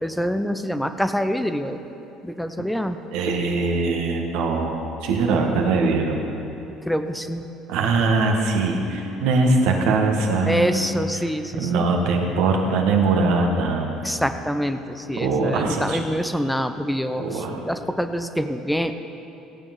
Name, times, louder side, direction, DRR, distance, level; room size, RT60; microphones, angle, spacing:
voice 1, 0.0-1.8 2.2-3.0 6.9-7.5 10.5-11.9 14.0-18.9, equal, ahead, 9 dB, 0.7 m, -26 dB
voice 2, 3.1-4.7 5.0-6.2 7.7-10.8 11.5-14.0 15.2-16.0 17.2-17.6, right 3 dB, 70° right, 2 dB, 1.5 m, -21 dB
15.5 x 9.0 x 5.3 m, 2.9 s
hypercardioid pair, 60°, 0 cm